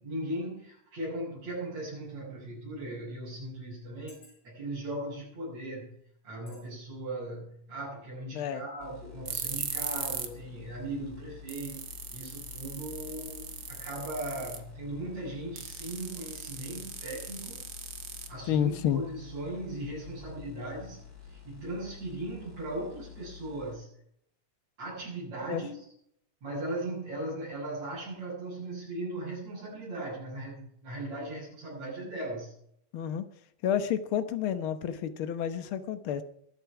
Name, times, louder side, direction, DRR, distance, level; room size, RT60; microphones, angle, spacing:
voice 1, 0.0-11.8 12.1-17.7 18.3-23.9 24.8-25.8 26.4-32.5, right 1 dB, 65° right, -10 dB, 8.6 m, -38 dB
sound 1, 4.1-4.7 5.4-5.6 6.5-6.7 7.1-7.2, left 3 dB, 80° left, 8.2 m, -58 dB
sound 2, 8.8-23.7, left 9 dB, 35° left, 4.3 m, -49 dB
sound 3, 9.3-10.4 10.7-10.8 11.2-11.3 11.5-14.7 15.6-18.7, right 7 dB, 45° right, 1.9 m, -38 dB
voice 2, 18.5-19.0 25.4-25.6 32.9-33.3 33.6-36.2, left 9 dB, 60° left, 11 dB, 1.6 m, -30 dB
22.5 x 8.0 x 5.9 m, 0.70 s
omnidirectional pair, 3.3 m